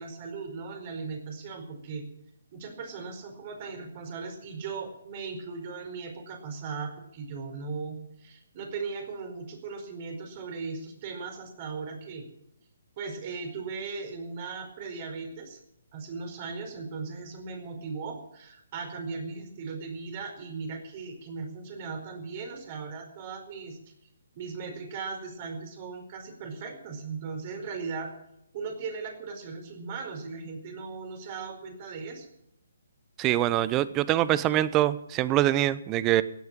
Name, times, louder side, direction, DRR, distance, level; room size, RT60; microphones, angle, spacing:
voice 1, 0.0-2.0 2.5-12.2 13.0-15.6 15.9-23.8 24.3-28.1 28.5-32.3, right 4 dB, 35° right, 4 dB, 4.6 m, -38 dB
voice 2, 33.2-36.2, right 13 dB, 20° right, 17 dB, 0.8 m, -24 dB
16.5 x 9.5 x 7.6 m, 0.76 s
hypercardioid pair, 145°, 0 cm